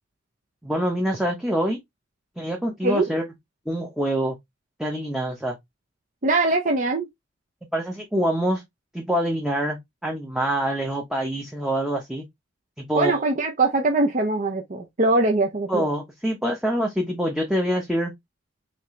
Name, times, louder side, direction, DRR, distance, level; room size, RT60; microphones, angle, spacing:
voice 1, 0.6-1.8 2.4-3.3 3.7-4.4 4.8-5.6 7.7-8.6 8.9-12.2 12.8-13.2 15.7-18.1, equal, 5° right, 0.8 m, -25 dB
voice 2, 6.2-7.1 12.9-15.9, right 2 dB, 40° right, 0.6 m, -22 dB
4.3 x 3.2 x 3.1 m
head